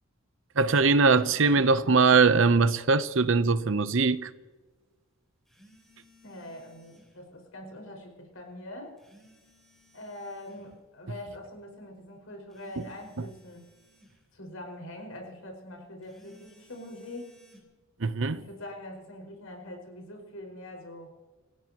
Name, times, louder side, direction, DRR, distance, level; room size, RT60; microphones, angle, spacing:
voice 1, 0.6-4.3 12.8-12.9 13.2-13.3 18.0-18.5, right 4 dB, 65° right, 0.8 m, -22 dB
sound 1, 5.5-7.2 9.0-10.7 12.5-14.2 16.0-17.6, equal, ahead, 3.9 m, -60 dB
voice 2, 6.2-8.9 9.9-13.7 14.3-17.3 18.3-21.1, left 1 dB, 85° left, 5.3 m, -43 dB
29.0 x 15.5 x 3.0 m
head